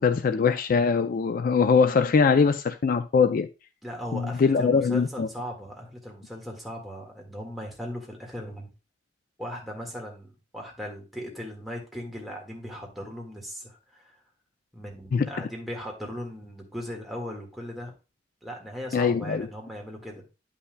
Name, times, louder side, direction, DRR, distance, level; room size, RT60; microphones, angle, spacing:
voice 1, 0.0-3.5 4.1-5.3 15.1-15.3 18.9-19.5, left 5 dB, 50° left, 0.3 m, -22 dB
voice 2, 3.8-8.7 9.4-14.1 14.7-17.9 18.4-20.2, equal, ahead, 1.7 m, -38 dB
9.7 x 5.6 x 2.2 m
head